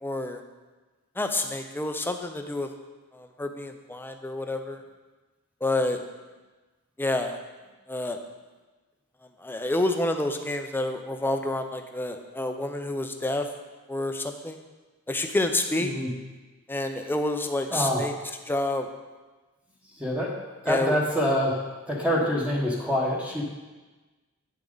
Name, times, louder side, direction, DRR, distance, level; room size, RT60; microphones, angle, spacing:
voice 1, 0.0-0.4 1.2-2.7 3.1-4.8 5.6-6.0 7.0-7.4 7.9-8.2 9.4-13.5 13.9-14.6 15.1-15.9 16.7-18.1 18.5-18.9 20.7-21.0, left 2 dB, 10° left, 5 dB, 0.6 m, -28 dB
voice 2, 15.8-16.1 17.7-18.0 20.0-20.3 20.6-21.6 21.9-23.4, equal, 5° right, -3 dB, 1.2 m, -25 dB
9.6 x 7.0 x 3.9 m, 1.2 s
head